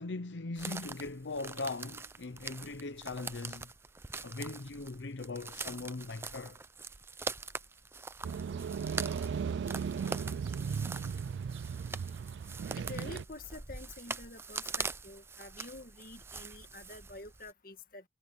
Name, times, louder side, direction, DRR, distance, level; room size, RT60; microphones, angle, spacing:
voice 1, 0.0-3.7 4.2-6.6, left 3 dB, 85° left, 0.8 m, -40 dB
sound 1, 0.6-17.5, right 4 dB, 15° right, 0.5 m, -43 dB
sound 2, 8.2-13.2, right 6 dB, 75° right, 0.3 m, -36 dB
voice 2, 12.8-18.0, left 3 dB, 50° left, 2.0 m, -48 dB
head